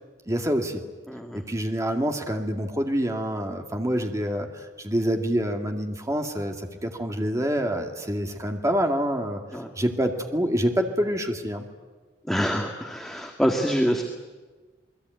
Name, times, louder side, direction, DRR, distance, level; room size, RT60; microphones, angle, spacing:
voice 1, 0.3-0.8 1.3-9.4 9.8-11.7, equal, 20° right, 4 dB, 2.2 m, -26 dB
voice 2, 1.1-1.4 9.5-9.7 12.3-14.0, equal, ahead, 2 dB, 1.8 m, -25 dB
28.5 x 21.0 x 9.4 m, 1.3 s
head